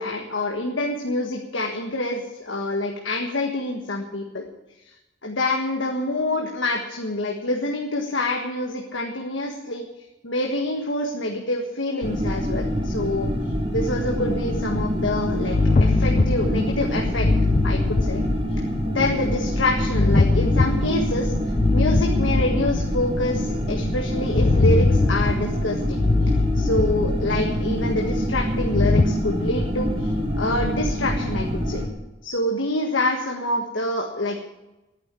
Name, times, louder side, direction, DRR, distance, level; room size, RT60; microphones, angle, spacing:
voice 1, 0.0-4.4 5.2-9.9 10.2-13.3 13.7-15.5 15.8-17.3 17.6-18.2 18.5-18.6 18.9-30.1 30.4-31.8 32.2-34.4, left 1 dB, 70° left, 1 dB, 1.7 m, -26 dB
sound 1, 12.0-31.9, equal, 30° right, 2.9 m, -25 dB
sound 2, 15.5-16.7 17.2-18.5 19.9-21.2 21.6-22.9 24.3-25.5 26.0-27.3 28.7-29.0, left 3 dB, 40° left, 0.5 m, -21 dB
11.5 x 10.0 x 9.0 m, 0.99 s
head